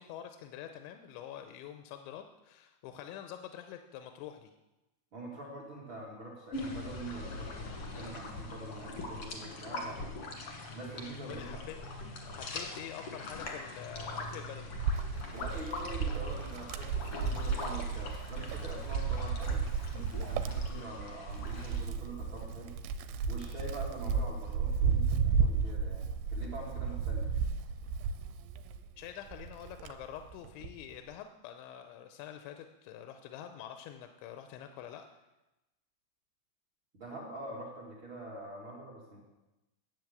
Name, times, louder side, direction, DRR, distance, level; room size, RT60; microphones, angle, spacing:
voice 1, 0.0-4.5 11.3-11.8 12.3-14.7 29.0-35.1, left 10 dB, 90° left, 6 dB, 3.0 m, -46 dB
voice 2, 5.1-7.7 7.9-10.3 10.7-11.6 15.3-19.6 20.1-22.7 23.3-27.3 36.9-39.2, right 1 dB, 45° right, -4 dB, 1.6 m, -45 dB
sound 1, 6.5-21.9, left 2 dB, 60° left, 1.5 m, -42 dB
Wind, 14.8-28.9 29.3-30.8, right 5 dB, 85° right, 3.0 m, -33 dB
10.5 x 8.3 x 7.9 m, 1.0 s
omnidirectional pair, 5.3 m